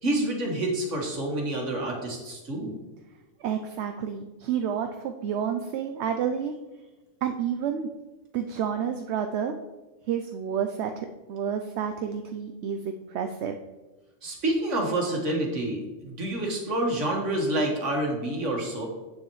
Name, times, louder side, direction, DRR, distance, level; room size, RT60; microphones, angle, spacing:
voice 1, 0.0-2.7 14.2-18.9, right 1 dB, 90° right, 0 dB, 2.0 m, -28 dB
voice 2, 3.4-6.5 7.2-7.9 8.3-9.6 10.1-13.6, right 8 dB, 70° right, 6 dB, 0.8 m, -30 dB
8.7 x 7.1 x 3.1 m, 1.1 s
omnidirectional pair, 1.2 m